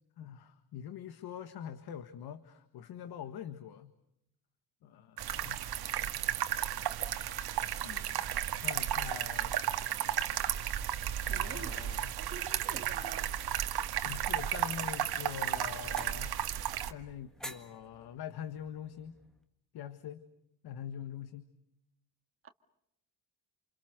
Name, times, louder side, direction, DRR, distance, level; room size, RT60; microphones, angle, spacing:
voice 1, 0.2-3.9 4.8-5.8 7.8-8.2 8.6-9.6 11.3-12.1 14.0-16.3 16.9-19.2 19.7-20.2 20.6-21.4, left 9 dB, 80° left, 1.7 m, -44 dB
sound 1, 5.2-16.9, right 11 dB, 75° right, 1.8 m, -34 dB
voice 2, 11.3-11.8 12.1-13.4 22.4-22.5, right 6 dB, 35° right, 1.9 m, -47 dB
sound 2, 14.0-19.4, equal, ahead, 1.8 m, -52 dB
29.0 x 28.5 x 6.6 m
cardioid pair, 175°, 38 cm